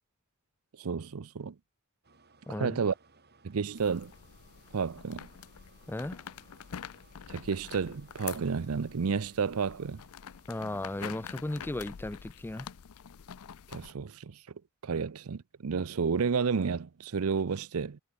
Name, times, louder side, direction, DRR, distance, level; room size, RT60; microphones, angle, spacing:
voice 1, 0.8-1.5 2.6-2.9 3.4-4.1 4.7-5.3 7.3-10.0 13.7-14.4 14.8-18.0, right 5 dB, 75° right, 0.6 m, -31 dB
sound 1, 2.0-13.3, right 3 dB, 50° right, 7.2 m, -64 dB
voice 2, 2.5-2.8 5.9-6.2 10.5-12.7 14.9-15.0, left 1 dB, 10° left, 0.4 m, -36 dB
sound 2, 3.8-13.9, left 8 dB, 85° left, 0.6 m, -46 dB
head